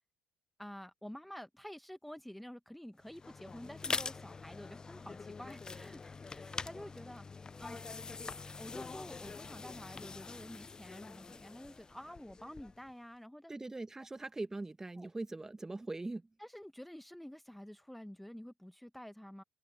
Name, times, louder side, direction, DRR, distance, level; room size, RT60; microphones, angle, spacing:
voice 1, 0.6-7.2 7.6-8.0 8.6-13.5 15.0-15.1 16.4-19.4, equal, 5° left, 0.9 m, -49 dB
sound 1, 3.0-12.9, left 4 dB, 25° left, 0.3 m, -44 dB
voice 2, 13.5-16.3, right 2 dB, 15° right, 1.2 m, -41 dB
supercardioid pair, 75°, 3 cm